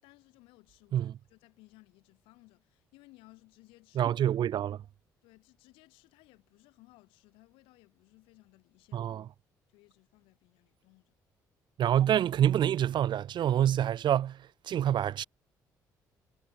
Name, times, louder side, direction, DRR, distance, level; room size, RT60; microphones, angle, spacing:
voice 1, 0.0-4.2 5.2-9.1 9.7-11.2, left 22 dB, 80° left, 7.9 m, -60 dB
voice 2, 4.0-4.8 8.9-9.2 11.8-14.4 14.7-15.2, right 10 dB, 60° right, 0.7 m, -26 dB
hypercardioid pair, 55°, 9 cm